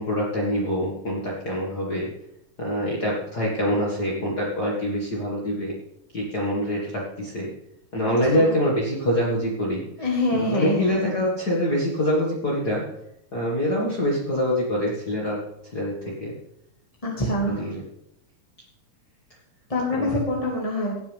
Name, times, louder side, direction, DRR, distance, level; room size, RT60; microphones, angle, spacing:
voice 1, 0.0-2.0 2.6-5.7 6.1-7.5 7.9-10.1 10.3-12.8 13.3-15.4 15.7-16.1 17.5-17.8 20.0-20.1, equal, 35° left, -5 dB, 2.1 m, -25 dB
voice 2, 8.0-8.5 10.0-11.0 17.0-17.7 19.7-21.0, left 1 dB, 15° left, -3 dB, 1.4 m, -25 dB
17.0 x 9.2 x 3.5 m, 0.79 s
omnidirectional pair, 3.4 m